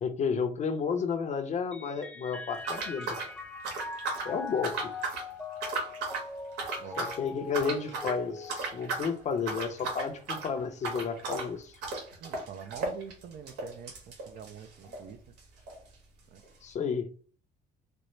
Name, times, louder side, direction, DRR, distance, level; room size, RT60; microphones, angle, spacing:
voice 1, 0.0-3.2 4.2-4.9 7.0-11.8 16.6-17.1, left 6 dB, 45° left, 7 dB, 0.6 m, -32 dB
Mallet percussion, 1.7-9.4, left 3 dB, 5° left, 0.5 m, -42 dB
sound 1, 2.6-4.3 4.6-5.3 5.6-6.3 6.6-7.2 7.5-8.2 8.5-9.1 9.4-15.1 15.4-15.5 15.7-15.8 16.4-16.5, right 3 dB, 90° right, 1.3 m, -35 dB
voice 2, 12.2-15.2 16.3-16.4, right 7 dB, 60° right, 9 dB, 0.5 m, -45 dB
4.2 x 2.0 x 3.1 m, 0.40 s
cardioid pair, 110°, 17 cm